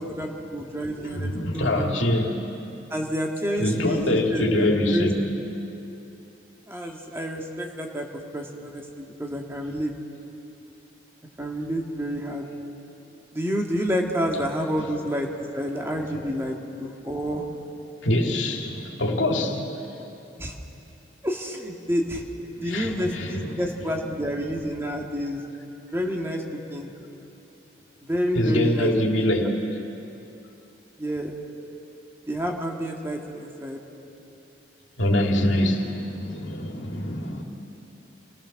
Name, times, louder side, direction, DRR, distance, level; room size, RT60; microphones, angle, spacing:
voice 1, 0.0-2.1 2.9-5.1 6.7-8.1 8.3-9.9 11.4-12.5 13.3-17.4 20.4-20.5 21.2-22.2 22.6-25.4 25.9-26.4 26.7-26.9 28.0-28.9 29.2-29.5 31.0-31.4 32.3-33.8, equal, 15° right, 0 dB, 1.9 m, -29 dB
voice 2, 1.0-2.3 3.6-5.1 16.0-16.2 18.0-19.7 22.6-23.5 28.4-29.5 35.0-37.4, left 1 dB, 85° left, 2 dB, 2.3 m, -24 dB
29.0 x 17.5 x 6.5 m, 2.8 s
head